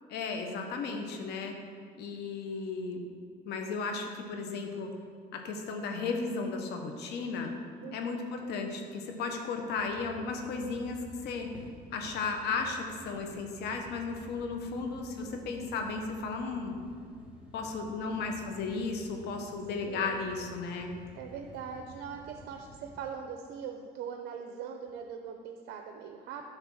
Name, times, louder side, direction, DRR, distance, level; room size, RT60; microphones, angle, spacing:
voice 1, 0.1-1.5 2.0-3.0 3.4-4.9 5.3-7.5 7.9-11.5 11.9-16.8 17.5-20.9, left 4 dB, 80° left, 3 dB, 1.0 m, -35 dB
voice 2, 7.8-8.3 19.9-20.3 21.2-26.5, right 7 dB, 80° right, 4 dB, 0.6 m, -41 dB
sound 1, 9.8-23.0, equal, 5° right, 1.4 m, -52 dB
9.8 x 3.4 x 6.2 m, 2.1 s
cardioid pair, 110°, 17 cm